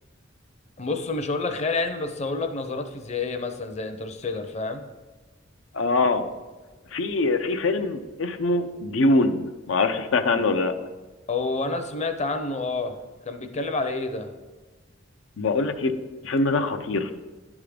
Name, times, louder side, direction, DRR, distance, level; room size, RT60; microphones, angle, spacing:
voice 1, 0.8-4.8 11.3-13.0 13.3-14.3, left 3 dB, 35° left, 7 dB, 0.6 m, -28 dB
voice 2, 5.7-6.2 6.9-10.8 15.4-15.9 16.2-17.1, left 2 dB, 85° left, 8 dB, 0.6 m, -23 dB
10.5 x 3.6 x 5.0 m, 1.3 s
head